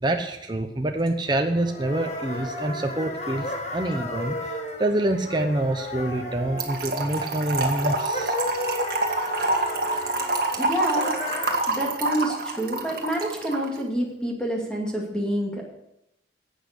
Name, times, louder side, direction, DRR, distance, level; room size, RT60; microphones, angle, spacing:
voice 1, 0.0-8.4, right 1 dB, 25° right, 4 dB, 0.8 m, -26 dB
sound 1, 1.3-11.6, left 1 dB, 40° left, 1.7 m, -34 dB
Trickle dribble / Fill (with liquid), 6.6-13.7, right 2 dB, 55° right, 1.8 m, -27 dB
voice 2, 10.6-11.2 11.7-15.6, right 1 dB, 5° left, -2 dB, 2.3 m, -27 dB
11.5 x 8.3 x 6.7 m, 0.84 s
head